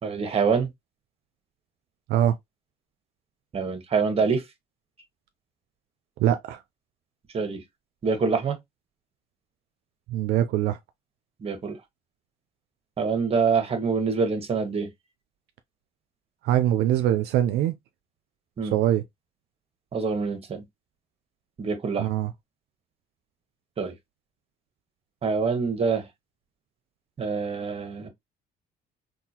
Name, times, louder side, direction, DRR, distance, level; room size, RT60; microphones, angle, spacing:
voice 1, 0.0-0.7 3.5-4.4 7.3-7.6 8.0-8.6 11.4-11.8 13.0-14.9 18.6-18.7 19.9-20.6 21.6-22.1 23.8-23.9 25.2-26.1 27.2-28.1, right 5 dB, 35° right, 1.2 m, -25 dB
voice 2, 6.2-6.6 10.1-10.8 16.4-17.7 18.6-19.0 22.0-22.3, right 12 dB, 75° right, 0.4 m, -23 dB
3.8 x 2.3 x 2.8 m
cardioid pair, 110°, 17 cm